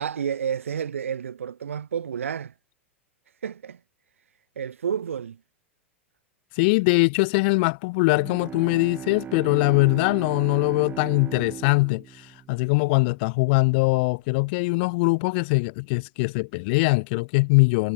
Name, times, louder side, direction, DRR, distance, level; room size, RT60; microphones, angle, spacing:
voice 1, 0.0-2.5 3.4-3.8 4.6-5.4, right 8 dB, 80° right, 0.4 m, -30 dB
voice 2, 6.6-17.9, left 28 dB, 50° left, 0.5 m, -22 dB
Bowed string instrument, 8.1-13.2, right 9 dB, 25° right, 0.9 m, -38 dB
figure-of-eight pair, 95°, 7 cm